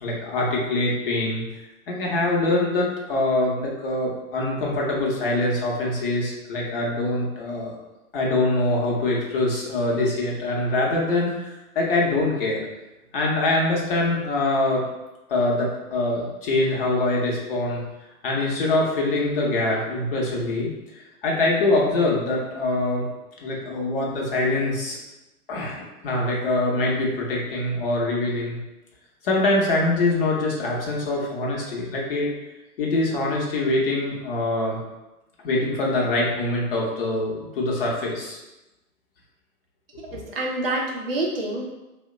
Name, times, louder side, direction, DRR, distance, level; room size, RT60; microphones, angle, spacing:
voice 1, 0.0-7.7 8.1-12.6 13.1-14.8 15.3-17.8 18.2-23.0 23.4-25.0 25.5-28.6 29.2-32.3 32.8-34.8 35.4-38.4 40.1-40.2, left 2 dB, 40° left, -2 dB, 0.8 m, -24 dB
voice 2, 40.1-41.7, right 2 dB, 40° right, -2 dB, 0.5 m, -27 dB
2.8 x 2.1 x 3.6 m, 1.0 s
hypercardioid pair, 135°, 45 cm